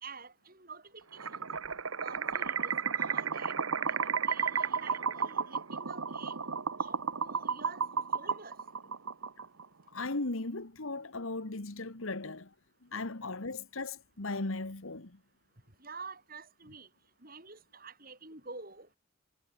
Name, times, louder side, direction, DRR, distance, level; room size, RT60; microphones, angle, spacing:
voice 1, 0.0-1.5 2.0-3.6 3.9-4.0 4.2-6.4 6.8-8.6 15.8-16.9 17.2-18.9, right 4 dB, 45° right, 4.6 m, -48 dB
sound 1, 1.2-9.7, right 6 dB, 75° right, 1.3 m, -33 dB
voice 2, 9.9-12.5 12.8-15.2, left 2 dB, 75° left, 1.6 m, -37 dB
head